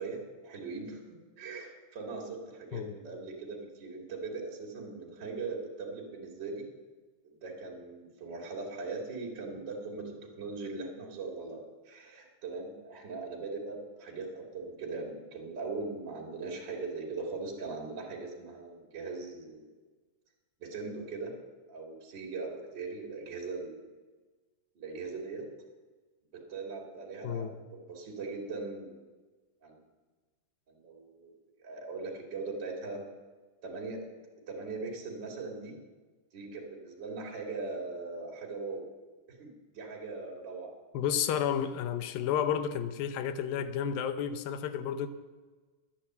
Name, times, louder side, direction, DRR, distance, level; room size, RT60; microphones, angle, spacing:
voice 1, 0.0-6.7 7.4-19.7 20.6-21.3 21.7-23.9 24.7-25.4 26.3-29.0 29.6-29.8 30.7-31.3 31.6-33.0 33.6-34.0 34.5-35.7 36.3-38.9 39.4-40.7, right 3 dB, 35° right, -1 dB, 2.5 m, -40 dB
voice 2, 27.2-27.5 40.9-45.1, left 8 dB, 85° left, 11 dB, 2.5 m, -31 dB
11.0 x 10.0 x 7.8 m, 1.3 s
omnidirectional pair, 4.1 m